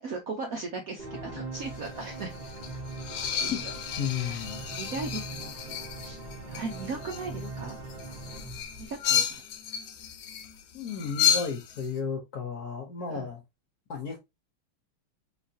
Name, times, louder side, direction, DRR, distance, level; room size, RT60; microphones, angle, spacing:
voice 1, 0.0-2.3 2.7-2.8 3.3-3.7 4.0-6.2 6.5-7.8 8.8-9.4 13.1-13.3, right 3 dB, 65° right, 0.8 m, -38 dB
sound 1, 1.0-9.4, right 2 dB, 35° right, 0.7 m, -41 dB
sound 2, 1.6-11.9, left 9 dB, 75° left, 1.4 m, -32 dB
voice 2, 4.0-4.6 7.4-7.5 10.7-13.4 13.9-14.2, left 6 dB, 55° left, 1.2 m, -33 dB
3.9 x 3.1 x 2.7 m
omnidirectional pair, 2.4 m